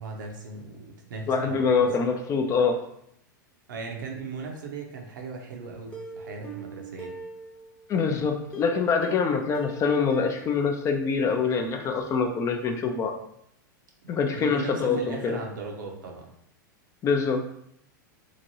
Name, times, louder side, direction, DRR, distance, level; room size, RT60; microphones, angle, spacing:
voice 1, 0.0-2.0 3.7-7.2 14.3-16.3, right 4 dB, 70° right, 2 dB, 0.7 m, -38 dB
voice 2, 1.3-2.7 7.9-13.1 14.1-15.4 17.0-17.4, left 5 dB, 30° left, 4 dB, 0.4 m, -25 dB
Plucked string instrument, 5.9-7.9 8.5-11.3 11.6-11.7 12.1-12.2, right 3 dB, 10° left, 0.8 m, -43 dB
2.9 x 2.5 x 2.7 m, 0.74 s
hypercardioid pair, 95°, 11 cm